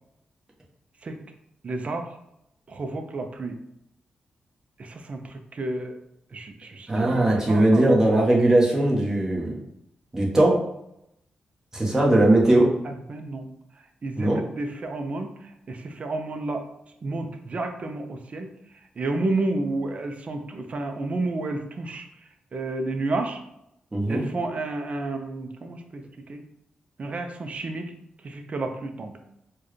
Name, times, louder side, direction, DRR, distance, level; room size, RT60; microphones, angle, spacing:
voice 1, 1.6-2.1 2.7-3.6 4.8-6.0 6.3-7.9 12.8-13.5 14.0-15.3 15.7-16.6 17.0-18.5 19.0-22.1 22.5-23.4 24.1-26.0 26.3-26.4 27.0-27.9 28.2-29.1, right 2 dB, 45° right, 5 dB, 0.5 m, -31 dB
voice 2, 6.9-9.5 10.1-10.5 11.7-12.7 14.2-14.4 23.9-24.2, right 1 dB, 20° right, -3 dB, 1.1 m, -19 dB
4.4 x 2.2 x 3.1 m, 0.81 s
cardioid pair, 90°, 3 cm